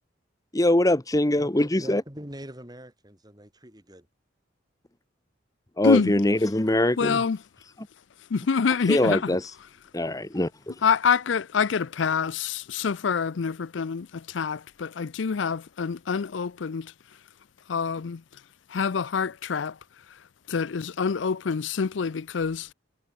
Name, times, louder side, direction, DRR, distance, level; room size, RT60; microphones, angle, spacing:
voice 1, 0.5-2.0 5.8-7.2 8.9-9.5 9.9-10.7, left 1 dB, 20° left, 1.0 m, -23 dB
voice 2, 1.3-4.1, right 1 dB, 20° right, 5.7 m, -43 dB
voice 3, 7.0-7.4 8.3-9.3 10.8-16.9 17.7-18.2 18.7-19.7 20.5-22.7, left 5 dB, 70° left, 0.5 m, -26 dB
head